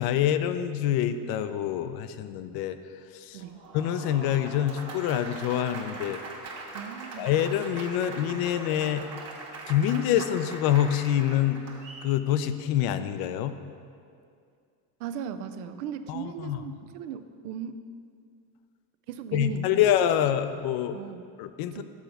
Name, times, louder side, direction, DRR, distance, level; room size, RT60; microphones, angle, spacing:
voice 1, 0.0-2.8 3.1-3.4 3.7-6.2 7.2-9.0 9.7-11.6 12.0-13.6 16.1-16.6 19.3-21.0 21.4-21.8, left 11 dB, 55° left, 11 dB, 0.5 m, -26 dB
Applause, 3.4-12.1, right 3 dB, 35° right, 1.2 m, -41 dB
voice 2, 6.7-7.3 15.0-17.9 19.1-19.8 20.9-21.2 21.7-21.8, right 8 dB, 85° right, 10 dB, 0.6 m, -37 dB
7.1 x 3.9 x 5.8 m, 2.3 s
supercardioid pair, 100°, 44 cm